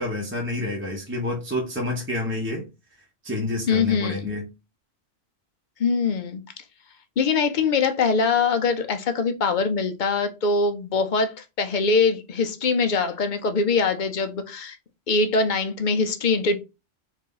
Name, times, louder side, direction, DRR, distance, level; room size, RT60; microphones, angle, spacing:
voice 1, 0.0-2.7 3.2-4.5, left 2 dB, 10° right, 0.8 m, -28 dB
voice 2, 3.7-4.2 5.8-6.4 7.2-14.8 15.1-16.6, left 4 dB, 50° left, 0.6 m, -23 dB
4.0 x 2.6 x 3.8 m
omnidirectional pair, 1.3 m